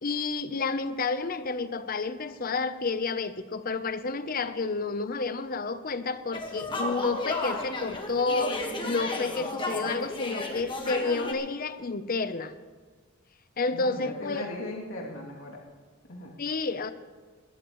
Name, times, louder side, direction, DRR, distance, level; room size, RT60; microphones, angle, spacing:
voice 1, 0.0-12.5 13.6-14.5 16.4-16.9, left 4 dB, 40° left, 12 dB, 0.7 m, -30 dB
sound 1, 6.3-11.3, left 2 dB, 20° left, 1.5 m, -33 dB
voice 2, 13.7-15.6 16.1-16.3, left 1 dB, 65° left, -2 dB, 2.7 m, -38 dB
20.5 x 14.0 x 3.1 m, 1.5 s
head